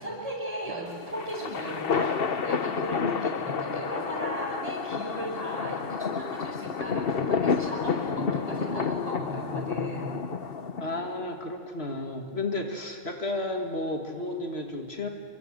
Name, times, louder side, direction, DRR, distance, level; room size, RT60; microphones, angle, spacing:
voice 1, 0.0-10.1, right 1 dB, 25° right, -7 dB, 5.6 m, -37 dB
sound 1, 0.9-11.3, left 5 dB, 65° left, 1.2 m, -30 dB
voice 2, 10.8-15.1, left 2 dB, 85° left, 3 dB, 2.5 m, -32 dB
28.0 x 25.5 x 7.8 m, 2.3 s
omnidirectional pair, 1.0 m